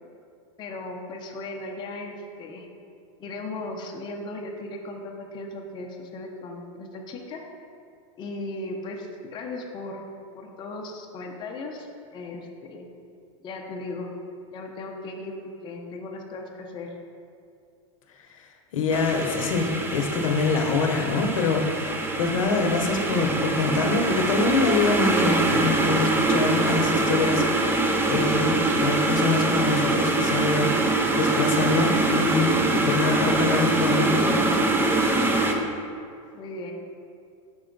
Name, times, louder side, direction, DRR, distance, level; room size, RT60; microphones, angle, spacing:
voice 1, 0.6-2.7 3.2-7.4 8.2-10.0 10.3-12.9 13.4-14.1 14.5-16.9 36.3-36.7, left 2 dB, 25° left, 1 dB, 0.6 m, -37 dB
voice 2, 18.7-27.4 28.1-34.5, left 4 dB, 80° left, 3 dB, 0.8 m, -25 dB
sound 1, 18.9-35.5, right 2 dB, 15° right, 0.5 m, -24 dB
6.1 x 4.3 x 3.9 m, 2.4 s
supercardioid pair, 130°, 17 cm